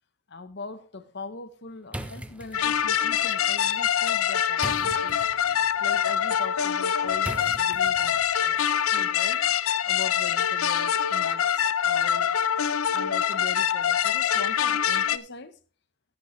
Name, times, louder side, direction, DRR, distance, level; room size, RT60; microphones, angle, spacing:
voice 1, 0.3-5.2 5.8-8.6 8.9-9.4 9.9-12.4 12.9-15.6, left 3 dB, 55° left, 0.9 m, -41 dB
sound 1, 1.9-8.4, right 1 dB, 5° right, 0.6 m, -42 dB
sound 2, 2.5-15.2, left 9 dB, 85° left, 0.6 m, -24 dB
14.5 x 9.1 x 3.1 m
head